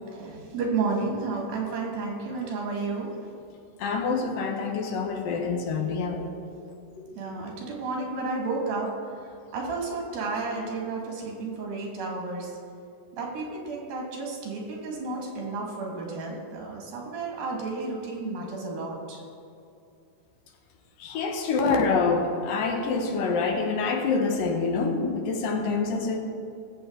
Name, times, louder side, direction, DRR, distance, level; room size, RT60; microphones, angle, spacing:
voice 1, 0.1-3.2 7.1-12.6 13.1-19.2, right 3 dB, 80° right, -1 dB, 3.9 m, -32 dB
voice 2, 3.8-6.4 7.0-7.2 21.0-26.2, left 4 dB, 75° left, 3 dB, 2.8 m, -26 dB
20.5 x 7.9 x 3.9 m, 2.6 s
omnidirectional pair, 4.1 m